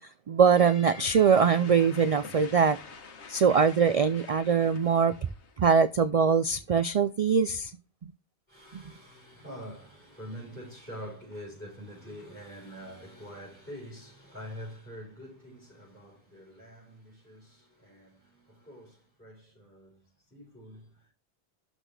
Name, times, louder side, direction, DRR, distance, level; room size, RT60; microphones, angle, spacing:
voice 1, 0.3-2.8 3.3-5.1 5.6-7.7, right 6 dB, 55° right, 0.4 m, -22 dB
sound 1, 0.6-5.6, left 5 dB, 80° left, 1.4 m, -47 dB
voice 2, 8.5-21.1, equal, 10° left, 4.7 m, -45 dB
12.0 x 4.1 x 3.4 m
omnidirectional pair, 1.1 m